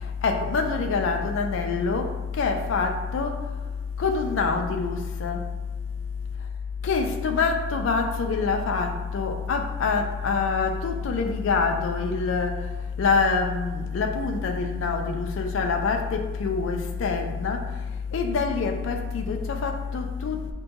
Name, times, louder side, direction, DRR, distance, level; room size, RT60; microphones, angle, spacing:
voice 1, 0.2-2.1 2.4-3.3 4.0-5.4 6.8-12.5 13.0-17.6 18.1-20.4, left 4 dB, 75° left, 4 dB, 0.4 m, -25 dB
5.2 x 2.2 x 2.8 m, 1.2 s
head